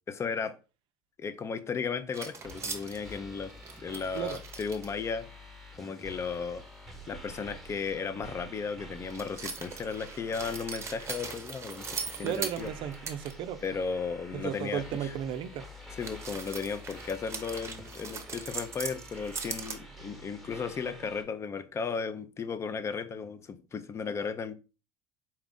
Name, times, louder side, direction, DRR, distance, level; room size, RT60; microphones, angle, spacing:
voice 1, 0.1-0.6 1.2-5.3 5.8-6.6 7.1-12.7 13.6-15.2 15.9-24.5, left 5 dB, 30° left, 0.5 m, -35 dB
sound 1, 2.1-4.9 9.1-13.3 13.6-13.7 16.0-19.8, right 5 dB, 25° right, 0.7 m, -40 dB
Content warning, 2.4-21.2, equal, ahead, 1.1 m, -48 dB
voice 2, 12.2-13.6 14.3-15.6, right 10 dB, 60° right, 0.4 m, -34 dB
4.3 x 2.4 x 3.6 m
supercardioid pair, 100°, 10 cm